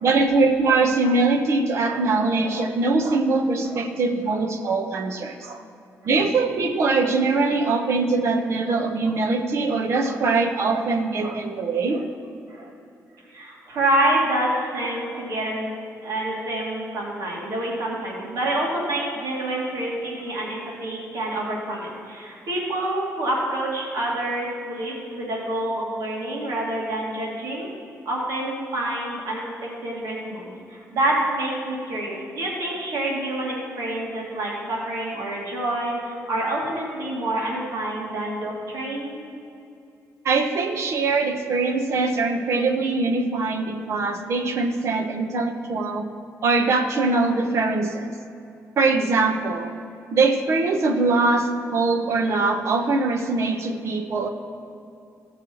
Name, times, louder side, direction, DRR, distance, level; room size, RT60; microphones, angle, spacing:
voice 1, 0.0-5.6 6.0-12.1 40.2-46.1 46.4-48.1 48.8-49.7 50.1-54.3, right 3 dB, 50° right, 5 dB, 1.0 m, -22 dB
voice 2, 13.3-15.7 16.0-27.7 28.1-39.2, right 1 dB, 75° right, -4 dB, 2.5 m, -27 dB
16.5 x 6.7 x 4.7 m, 2.7 s
wide cardioid pair, 170°, 6 cm